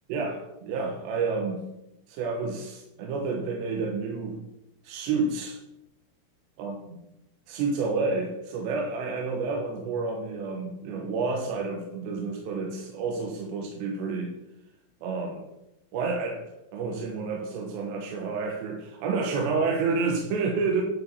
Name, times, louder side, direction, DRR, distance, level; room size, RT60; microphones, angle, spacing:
voice 1, 0.1-1.6 2.1-4.4 4.8-5.6 6.6-6.7 7.5-14.3 15.0-15.5 15.9-16.4 16.7-20.8, right 4 dB, 70° right, 1 dB, 2.9 m, -29 dB
11.5 x 5.2 x 6.6 m, 0.90 s
omnidirectional pair, 5.8 m